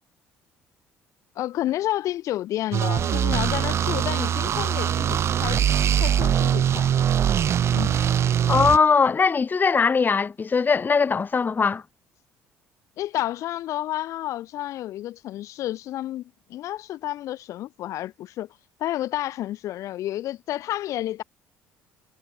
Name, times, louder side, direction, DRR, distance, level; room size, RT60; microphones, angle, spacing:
voice 1, 1.3-5.6 5.9-6.9 7.7-8.0 13.0-18.5 18.8-21.2, left 14 dB, 65° left, 1.6 m, -30 dB
sound 1, 2.7-8.8, right 9 dB, 50° right, 1.0 m, -22 dB
voice 2, 8.5-11.8, left 5 dB, 35° left, 1.9 m, -20 dB
hypercardioid pair, 60°, 6 cm